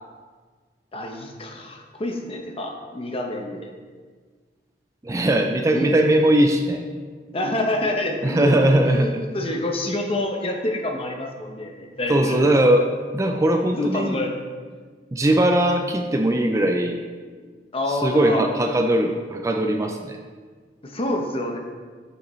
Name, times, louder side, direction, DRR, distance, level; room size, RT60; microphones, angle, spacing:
voice 1, 0.9-3.7 5.7-6.0 7.3-12.4 13.8-14.4 17.7-18.4 20.8-21.6, left 1 dB, 35° left, 2 dB, 0.8 m, -27 dB
voice 2, 5.0-6.8 8.2-9.2 12.1-12.9 13.1-14.2 15.1-17.0 17.9-20.2, right 1 dB, 20° right, 4 dB, 0.4 m, -20 dB
7.6 x 6.5 x 3.1 m, 1.5 s
head